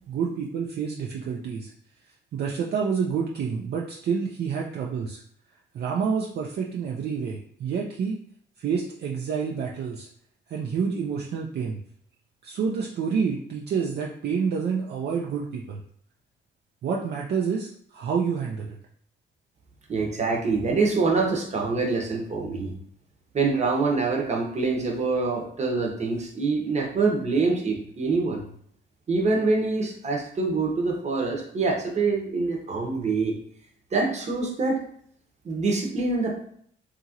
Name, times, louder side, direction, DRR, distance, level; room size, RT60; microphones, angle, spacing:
voice 1, 0.1-1.7 2.3-5.2 5.7-8.2 8.6-10.1 10.5-11.8 12.4-15.8 16.8-18.8, right 6 dB, 55° right, -1 dB, 0.5 m, -28 dB
voice 2, 19.9-22.7 23.3-28.4 29.1-33.4 33.9-34.8 35.4-36.5, right 3 dB, 35° right, 0 dB, 0.8 m, -25 dB
2.8 x 2.5 x 2.8 m, 0.64 s
cardioid pair, 90°, 20 cm